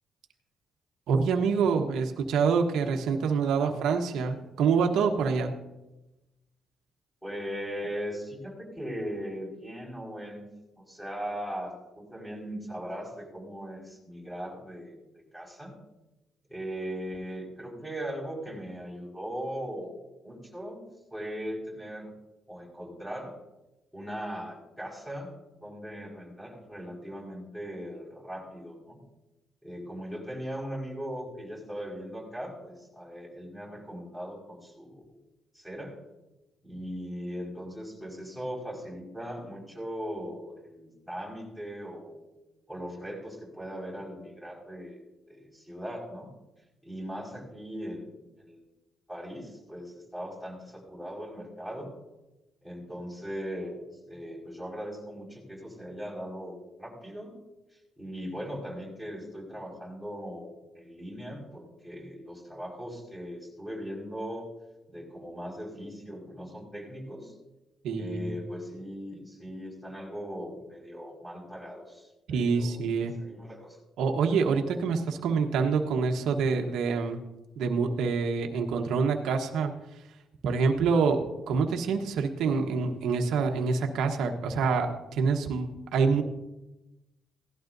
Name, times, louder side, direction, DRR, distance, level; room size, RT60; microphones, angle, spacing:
voice 1, 1.1-5.5 67.8-68.3 72.3-73.1 74.0-77.2 77.6-79.7 80.4-86.2, right 5 dB, 85° right, 3 dB, 1.2 m, -26 dB
voice 2, 7.2-10.4 10.8-15.7 16.5-19.9 20.2-20.8 21.1-22.1 22.5-23.3 23.9-25.3 25.6-29.0 29.6-35.1 35.5-36.0 36.6-42.3 42.7-45.0 45.3-46.3 46.8-48.1 48.4-48.6 49.1-51.9 52.6-57.3 58.0-64.5 64.9-67.3 68.0-73.8, equal, 5° left, -3 dB, 5.2 m, -39 dB
17.5 x 12.0 x 2.7 m, 0.99 s
cardioid pair, 90°, 0 cm